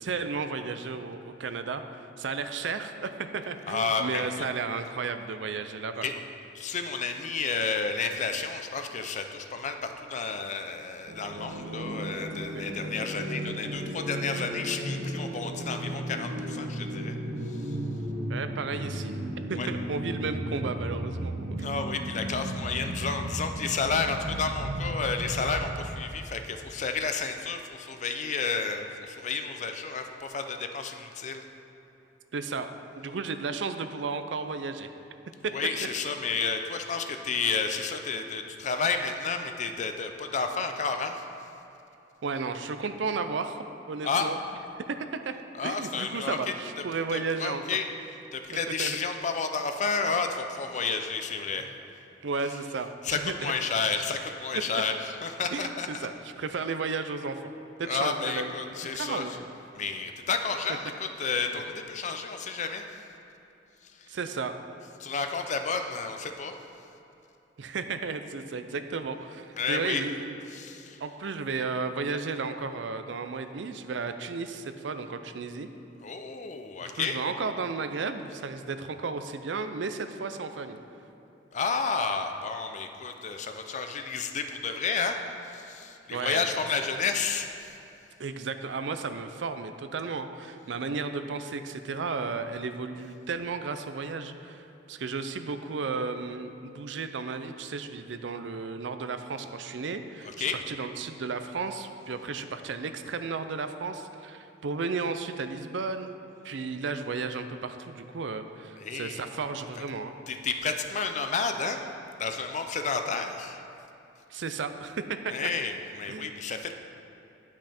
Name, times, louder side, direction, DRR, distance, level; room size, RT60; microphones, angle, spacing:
voice 1, 0.0-6.0 12.5-12.6 18.3-19.1 19.5-21.7 32.3-32.7 33.0-34.9 35.4-35.5 42.2-43.6 43.9-44.4 44.8-45.3 45.6-47.6 48.7-49.0 52.2-53.5 55.5-55.7 56.0-57.4 57.8-58.5 58.9-59.5 64.1-64.6 67.6-70.4 71.0-75.7 76.8-80.8 86.1-86.4 88.2-106.1 106.4-110.1 114.3-115.5 116.1-116.3, right 4 dB, 80° right, 9 dB, 0.5 m, -33 dB
voice 2, 3.7-4.3 6.0-6.1 6.5-17.1 17.5-17.8 19.6-19.7 21.6-31.4 35.5-41.3 44.0-44.3 45.5-46.4 47.1-47.9 48.3-51.7 53.0-56.1 57.8-59.2 59.7-62.9 63.8-64.1 65.0-66.6 69.6-70.0 70.5-71.0 76.0-77.2 81.5-87.8 100.2-100.6 108.8-109.2 110.3-111.8 112.2-113.6 115.3-116.7, left 5 dB, 40° left, 7 dB, 0.5 m, -31 dB
sound 1, 11.1-26.0, right 1 dB, 45° right, 0.7 m, -34 dB
10.0 x 6.1 x 4.3 m, 2.9 s
head